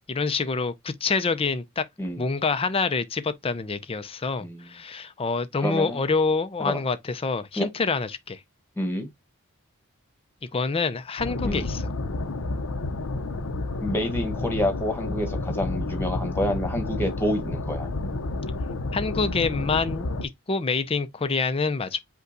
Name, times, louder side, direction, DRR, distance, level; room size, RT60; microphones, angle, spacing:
voice 1, 0.1-1.9 2.2-8.4 10.5-11.8 18.9-22.0, left 4 dB, 25° left, 0.5 m, -26 dB
voice 2, 4.4-4.7 5.6-6.0 6.6-6.8 7.6-7.7 8.8-9.1 11.4-11.7 13.8-17.9, left 1 dB, 10° left, 1.2 m, -28 dB
sound 1, 11.2-20.2, left 2 dB, 80° left, 0.7 m, -30 dB
5.4 x 2.3 x 3.9 m
head